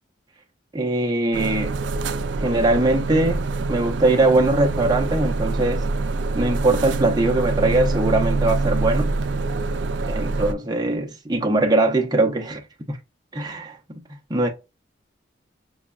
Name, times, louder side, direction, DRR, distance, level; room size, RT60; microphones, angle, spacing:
voice 1, 0.7-1.8 2.4-5.8 6.4-9.1 10.1-12.6 12.9-13.0 13.3-13.8 14.3-14.5, right 2 dB, 20° right, 0.6 m, -21 dB
sound 1, 1.3-10.5, right 3 dB, 75° right, 0.4 m, -25 dB
6.1 x 2.3 x 2.3 m
head